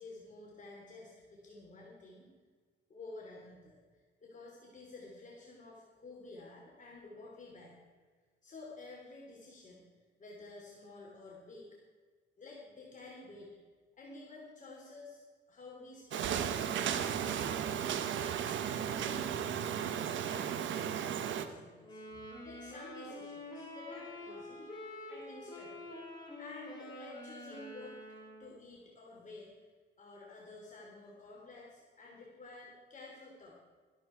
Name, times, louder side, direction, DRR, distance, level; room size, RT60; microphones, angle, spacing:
voice 1, 0.0-2.3 2.9-3.8 4.2-7.8 8.4-9.8 10.2-11.8 12.4-13.6 14.0-15.2 15.5-24.7 25.1-26.0 26.4-27.9 28.4-29.6 30.0-33.5, left 2 dB, 40° left, -4 dB, 3.5 m, -51 dB
sound 1, 16.1-21.5, right 9 dB, 75° right, 1.0 m, -35 dB
sound 2, 21.8-28.6, left 1 dB, 20° left, 4.1 m, -47 dB
13.5 x 12.0 x 4.7 m, 1.5 s
cardioid pair, 90°, 20 cm